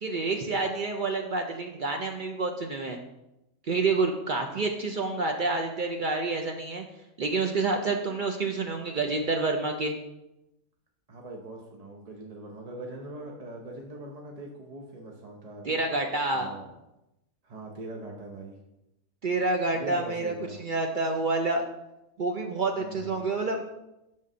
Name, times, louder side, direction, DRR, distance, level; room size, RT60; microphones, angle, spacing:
voice 1, 0.0-3.0 3.7-6.8 7.2-9.9 15.6-16.5 19.2-21.6 22.2-23.6, right 3 dB, 70° right, 3 dB, 0.4 m, -28 dB
voice 2, 11.1-15.7 16.3-16.7 17.4-18.5 19.7-20.6 22.8-23.2, right 2 dB, 30° right, 0 dB, 0.7 m, -42 dB
7.5 x 3.8 x 6.2 m, 0.92 s
omnidirectional pair, 1.6 m